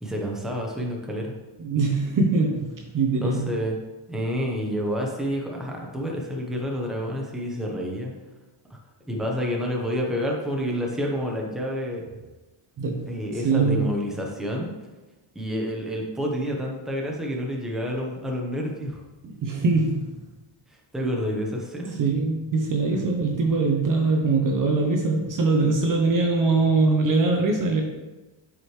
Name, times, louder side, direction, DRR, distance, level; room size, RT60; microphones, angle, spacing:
voice 1, 0.0-1.3 3.2-3.8 4.1-8.1 8.7-8.8 9.1-12.0 13.1-14.7 15.3-19.0 20.9-22.0 22.9-23.0, equal, ahead, -1 dB, 1.0 m, -29 dB
voice 2, 1.6-3.5 12.8-13.8 19.2-20.1 22.0-27.8, right 3 dB, 40° right, 2 dB, 0.8 m, -22 dB
7.5 x 4.9 x 3.2 m, 1.1 s
cardioid pair, 135°, 49 cm